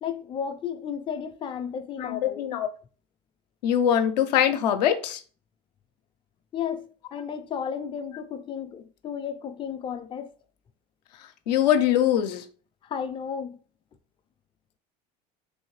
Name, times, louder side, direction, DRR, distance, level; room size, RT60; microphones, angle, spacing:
voice 1, 0.0-2.4 6.5-10.3 12.8-13.6, left 7 dB, 25° left, 0.4 m, -33 dB
voice 2, 2.0-2.7 3.6-5.2 11.2-12.4, left 10 dB, 85° left, 0.5 m, -23 dB
3.2 x 2.7 x 3.1 m
hypercardioid pair, 80°, 21 cm